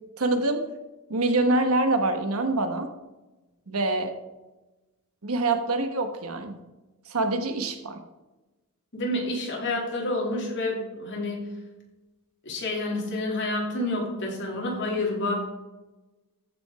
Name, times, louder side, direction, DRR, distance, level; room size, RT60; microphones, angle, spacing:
voice 1, 0.2-0.6 1.1-2.9 3.7-4.2 5.2-6.6 7.1-8.0, right 2 dB, 70° right, 6 dB, 1.2 m, -25 dB
voice 2, 8.9-11.5 12.4-15.3, left 2 dB, 55° left, -2 dB, 2.8 m, -29 dB
14.0 x 5.1 x 4.9 m, 1.1 s
head